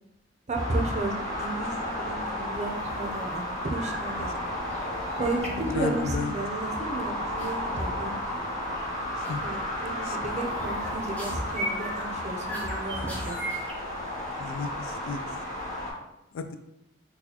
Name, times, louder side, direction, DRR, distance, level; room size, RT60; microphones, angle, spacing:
sound 1, 0.5-15.9, left 1 dB, 40° left, 1.4 m, -33 dB
voice 1, 0.5-4.3 5.2-8.1 8.4-8.5 9.4-13.4, right 2 dB, 35° right, 2 dB, 0.5 m, -33 dB
sound 2, 2.6-3.0 3.2-3.5 3.7-4.2 4.5-6.2 7.4-7.5 8.0-8.4 8.7-8.9 9.2-9.6 10.0-13.7, right 1 dB, 10° left, 0.6 m, -39 dB
voice 2, 5.4-6.3 9.2-9.4 10.0-10.2 14.4-15.2 16.3-16.5, left 4 dB, 85° left, 9 dB, 0.3 m, -34 dB
4.0 x 2.3 x 2.8 m, 0.88 s
head